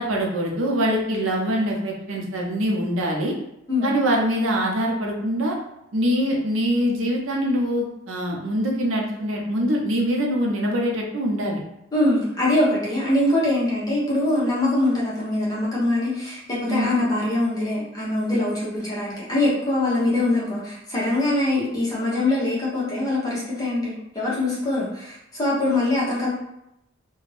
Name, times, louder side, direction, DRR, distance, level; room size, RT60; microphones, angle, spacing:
voice 1, 0.0-3.3 3.8-5.6 5.9-11.6 16.7-16.9, equal, 80° right, -1 dB, 0.7 m, -24 dB
voice 2, 11.9-26.3, left 1 dB, 20° left, -7 dB, 0.8 m, -23 dB
2.5 x 2.2 x 3.2 m, 0.82 s
head